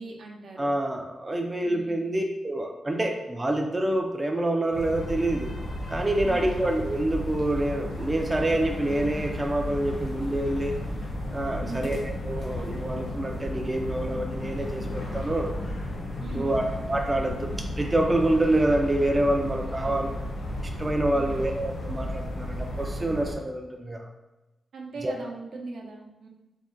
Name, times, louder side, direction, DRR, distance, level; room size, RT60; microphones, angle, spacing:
voice 1, 0.0-0.7 1.6-2.1 6.2-6.7 11.6-12.0 16.2-16.6 19.8-20.3 21.1-21.5 24.7-26.3, right 3 dB, 75° right, -1 dB, 0.6 m, -40 dB
voice 2, 0.6-5.5 5.9-10.7 11.3-15.5 16.3-16.6 16.9-17.5 17.8-20.1 20.8-24.1 25.0-25.1, right 1 dB, 20° right, 2 dB, 0.3 m, -27 dB
sound 1, 4.7-23.3, left 1 dB, 75° left, 0.9 m, -33 dB
3.6 x 2.1 x 3.7 m, 1.0 s
cardioid pair, 105°, 0 cm